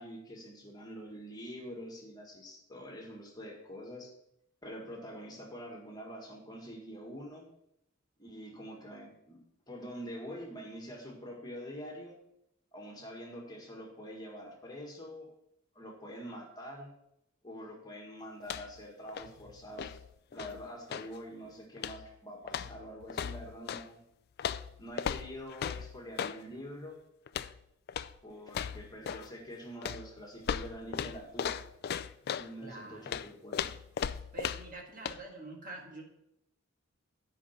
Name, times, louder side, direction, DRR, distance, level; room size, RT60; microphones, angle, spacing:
voice 1, 0.0-4.1 4.6-7.5 8.2-9.4 9.7-12.2 12.7-15.3 15.7-17.0 17.4-20.0 20.3-24.0 24.8-27.0 28.2-31.6 32.4-33.7, equal, 20° left, -1 dB, 1.7 m, -45 dB
sound 1, 18.4-18.8 19.1-21.2 21.8-22.1 22.5-23.9 24.4-26.4 27.3-27.6 27.9-28.2 28.5-29.3 29.8-32.5 33.1-34.8 35.0-35.2, left 8 dB, 50° left, 0.3 m, -37 dB
voice 2, 32.6-33.3 34.3-36.0, right 3 dB, 40° right, 1 dB, 1.6 m, -46 dB
9.8 x 5.4 x 5.7 m, 0.80 s
head